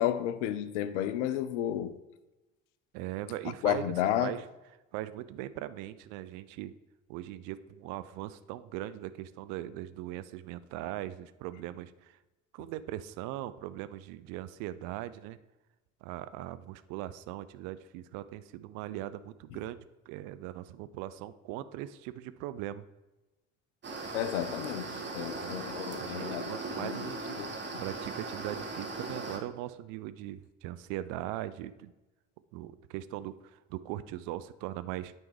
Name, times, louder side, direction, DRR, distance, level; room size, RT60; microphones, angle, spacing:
voice 1, 0.0-1.9 3.6-4.3 24.1-27.0 27.4-27.5, left 11 dB, 65° left, 0.6 m, -32 dB
voice 2, 2.9-4.5 4.9-6.7 7.1-12.2 12.5-15.4 16.0-22.9 25.4-25.6 26.0-27.4 27.8-31.9 32.5-35.1, right 13 dB, 55° right, 0.4 m, -40 dB
sound 1, 23.8-29.4, right 3 dB, 30° right, 1.5 m, -38 dB
9.3 x 3.5 x 4.6 m
figure-of-eight pair, 55°, 38 cm